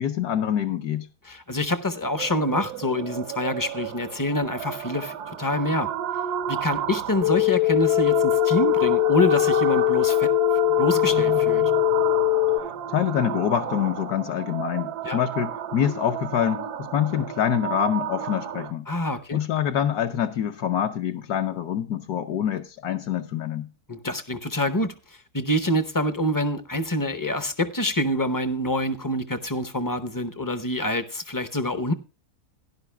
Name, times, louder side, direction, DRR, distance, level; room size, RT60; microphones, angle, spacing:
voice 1, 0.0-1.1 12.9-18.8 19.3-23.7, left 9 dB, 75° left, 1.2 m, -26 dB
voice 2, 1.3-5.9 6.5-10.3 10.8-11.6 15.0-15.2 18.9-19.4 23.9-24.9 25.3-31.9, left 1 dB, 25° left, 0.4 m, -26 dB
sound 1, 2.2-18.7, right 9 dB, 85° right, 1.3 m, -32 dB
sound 2, 7.2-12.6, left 20 dB, 55° left, 0.8 m, -21 dB
17.0 x 10.5 x 2.2 m
omnidirectional pair, 1.6 m